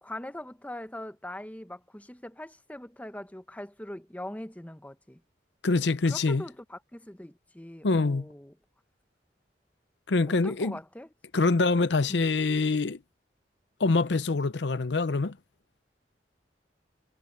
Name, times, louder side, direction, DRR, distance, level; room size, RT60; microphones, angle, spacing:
voice 1, 0.0-5.2 6.1-8.5 10.3-11.1 12.1-12.3, left 1 dB, 10° left, 0.9 m, -42 dB
voice 2, 5.6-6.4 7.8-8.3 10.1-10.8 11.3-13.0 13.8-15.4, left 3 dB, 75° left, 0.7 m, -25 dB
head